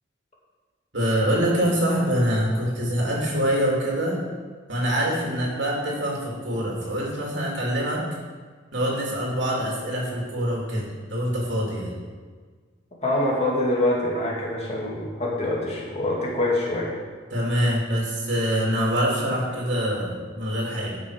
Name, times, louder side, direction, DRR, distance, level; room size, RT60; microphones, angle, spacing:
voice 1, 0.9-4.2 4.7-8.0 8.7-11.9 17.3-21.0, equal, 65° right, -3 dB, 2.9 m, -25 dB
voice 2, 13.0-16.9, left 1 dB, 35° left, -3 dB, 2.1 m, -25 dB
11.5 x 6.2 x 5.0 m, 1.5 s
head